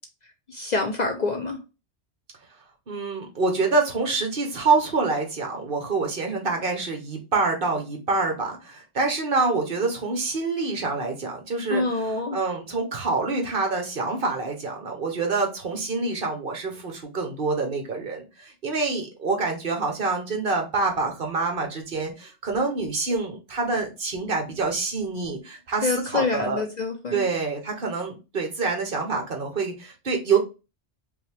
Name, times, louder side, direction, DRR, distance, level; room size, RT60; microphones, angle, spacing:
voice 1, 0.5-1.6 11.7-12.4 25.8-27.2, left 3 dB, 45° left, 0.7 m, -26 dB
voice 2, 2.9-26.6 27.1-30.4, right 3 dB, 50° right, 1.1 m, -26 dB
5.2 x 2.3 x 3.3 m
omnidirectional pair, 1.2 m